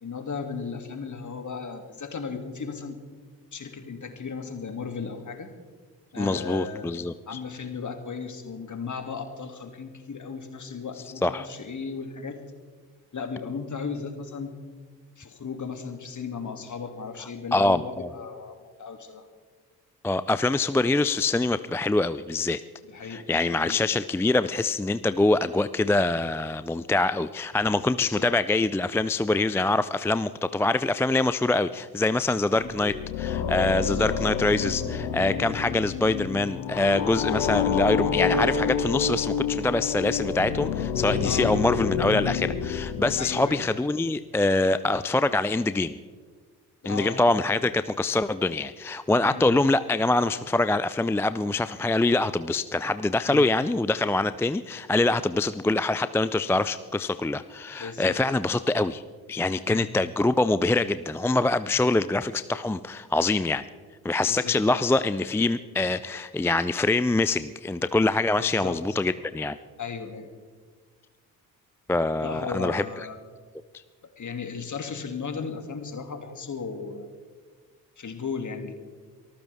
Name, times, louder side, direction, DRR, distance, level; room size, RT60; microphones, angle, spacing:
voice 1, 0.0-3.0 3.5-5.5 6.1-6.9 7.3-12.4 13.1-14.5 15.2-19.3 22.9-23.8 28.0-28.3 32.5-32.7 33.8-34.1 41.2-41.5 43.2-43.6 46.8-47.2 49.2-49.5 53.3-53.5 57.8-58.2 59.7-59.9 64.3-64.8 68.4-68.8 69.8-70.3 72.2-73.2 74.0-77.1 78.0-78.7, left 5 dB, 40° left, 6 dB, 2.6 m, -36 dB
voice 2, 6.2-7.4 11.2-11.5 17.5-18.1 20.0-22.6 23.1-46.0 46.8-59.0 59.3-63.6 64.0-69.6 71.9-72.8, left 2 dB, 5° left, 13 dB, 0.4 m, -24 dB
sound 1, 32.5-43.7, left 7 dB, 70° left, 1.5 m, -28 dB
24.0 x 14.5 x 3.6 m, 1.5 s
hypercardioid pair, 45°, 47 cm